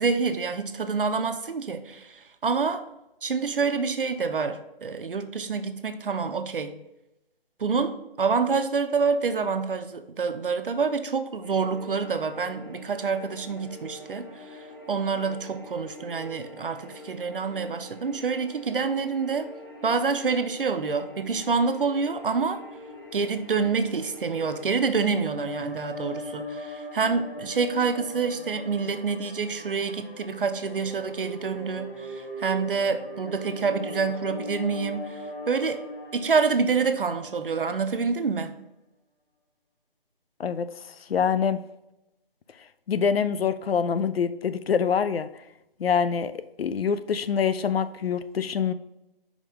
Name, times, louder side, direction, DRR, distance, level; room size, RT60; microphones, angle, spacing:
voice 1, 0.0-2.9 3.2-6.8 7.6-19.5 19.8-22.6 23.1-35.2 35.5-35.8 36.1-38.5, right 5 dB, 65° right, 0.6 m, -27 dB
sound 1, 11.4-24.7, left 2 dB, 25° left, 0.7 m, -45 dB
sound 2, 24.7-38.0, left 1 dB, 70° left, 1.3 m, -39 dB
voice 2, 41.1-41.6 42.9-45.3 45.8-48.7, left 7 dB, 85° left, 0.5 m, -25 dB
5.1 x 3.6 x 5.2 m
hypercardioid pair, 180°, 29 cm